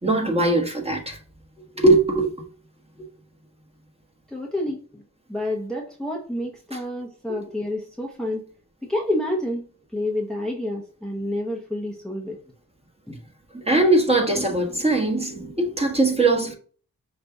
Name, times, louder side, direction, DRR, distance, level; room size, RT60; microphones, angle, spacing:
voice 1, 0.0-1.2 1.7-2.3 6.7-6.8 7.3-7.4 13.5-16.5, right 2 dB, 15° right, 1.3 m, -20 dB
voice 2, 4.3-4.8 5.3-8.4 8.8-9.6 9.9-12.4 13.1-13.2, left 1 dB, ahead, 0.9 m, -28 dB
5.4 x 2.5 x 3.4 m
cardioid pair, 70°, 35 cm